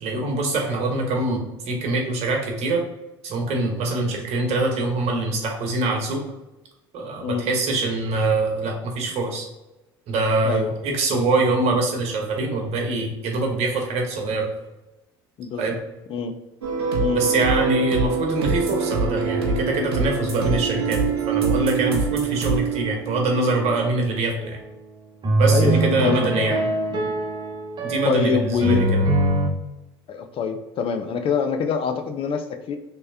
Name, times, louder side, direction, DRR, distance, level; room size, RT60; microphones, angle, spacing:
voice 1, 0.0-2.8 3.2-6.2 6.9-9.5 10.1-14.5 15.6-15.7 17.1-21.0 21.3-24.6 25.4-26.6 27.8-29.0, right 2 dB, 55° right, 2 dB, 1.0 m, -24 dB
voice 2, 15.4-15.8 16.1-16.3 17.0-17.2 25.5-26.6 26.9-27.1 28.0-28.9 30.1-32.8, left 6 dB, 45° left, 7 dB, 0.5 m, -25 dB
sound 1, 16.6-23.9, right 5 dB, 90° right, 0.7 m, -24 dB
sound 2, 24.4-24.5 25.2-29.5, right 2 dB, 35° right, 0.8 m, -23 dB
3.2 x 3.0 x 3.3 m, 1.0 s
hypercardioid pair, 70°, 13 cm